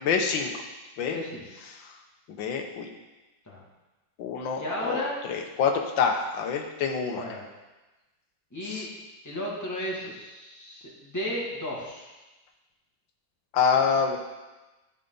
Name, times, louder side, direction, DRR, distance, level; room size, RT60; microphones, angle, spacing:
voice 1, 0.0-0.5 1.0-1.2 2.4-2.9 4.2-7.2 8.6-8.9 13.5-14.2, left 6 dB, 85° left, 4 dB, 1.7 m, -26 dB
voice 2, 1.1-1.5 3.5-3.6 4.6-5.1 7.1-7.5 8.5-8.9 9.2-12.1, left 1 dB, 10° left, -6 dB, 2.0 m, -34 dB
13.5 x 5.7 x 3.9 m, 1.1 s
omnidirectional pair, 2.0 m